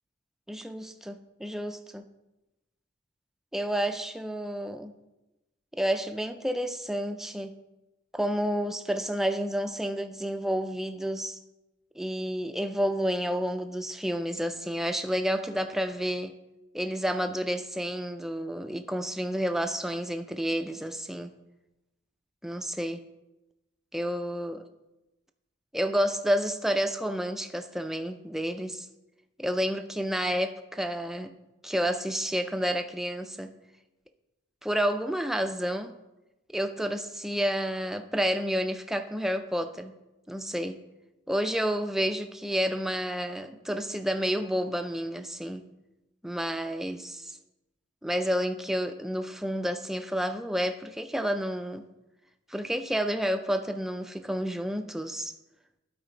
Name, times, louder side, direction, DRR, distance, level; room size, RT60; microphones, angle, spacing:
voice 1, 0.5-2.0 3.5-4.9 5.7-7.5 8.1-11.4 12.0-16.3 16.7-21.3 22.4-23.0 23.9-24.6 25.7-28.9 29.4-31.3 31.6-33.5 34.6-35.9 36.5-39.9 40.3-40.8 41.3-45.6 46.2-47.4 48.0-51.8 52.5-55.3, equal, ahead, 7 dB, 0.3 m, -30 dB
12.0 x 4.4 x 3.8 m, 1.0 s
head